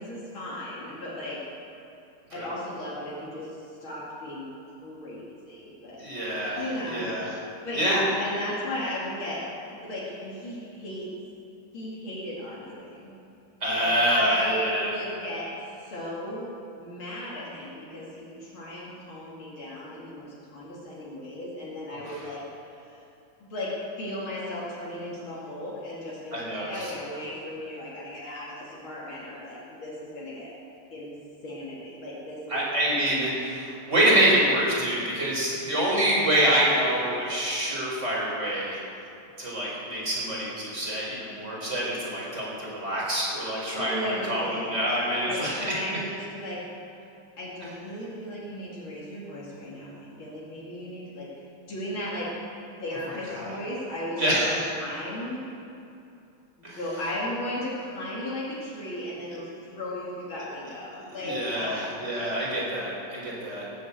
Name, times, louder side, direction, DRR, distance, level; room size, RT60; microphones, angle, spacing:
voice 1, 0.0-1.4 2.3-4.5 4.8-6.0 6.6-7.1 7.6-11.1 11.7-13.1 13.7-15.5 15.8-16.5 16.8-23.0 23.4-30.5 30.9-31.1 31.4-32.6 43.8-46.6 47.4-52.3 52.8-55.4 56.6-61.8 63.2-63.7, left 1 dB, 65° left, -7 dB, 3.3 m, -36 dB
voice 2, 6.0-7.4 7.7-8.0 13.6-14.9 21.9-22.1 26.3-26.9 32.5-38.8 39.4-45.5 53.4-53.5 54.2-54.6 56.6-56.8 59.3-59.4 61.2-63.6, right 1 dB, 30° right, -5 dB, 4.5 m, -26 dB
18.5 x 7.9 x 8.2 m, 2.7 s
omnidirectional pair, 2.4 m